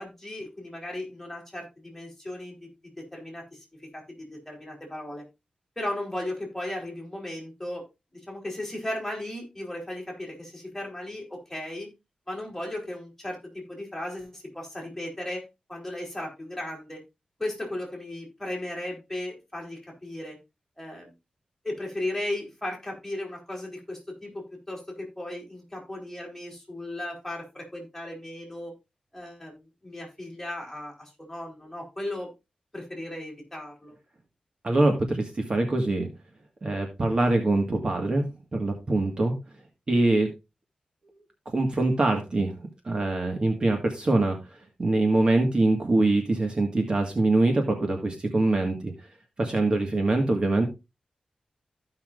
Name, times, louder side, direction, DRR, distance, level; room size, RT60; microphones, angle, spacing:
voice 1, 0.0-2.7 3.0-3.4 3.9-5.2 5.8-7.9 8.3-11.9 12.3-15.4 15.7-17.0 17.4-20.4 20.8-21.1 21.6-28.7 29.1-32.3 32.7-33.9, left 1 dB, 10° left, -1 dB, 3.7 m, -36 dB
voice 2, 34.6-36.1 36.6-39.3 39.9-40.3 41.4-42.5 42.8-44.4 44.8-48.9 49.4-50.7, right 2 dB, 40° right, 3 dB, 1.7 m, -24 dB
15.0 x 5.7 x 2.5 m, 0.24 s
wide cardioid pair, 115°, 2 cm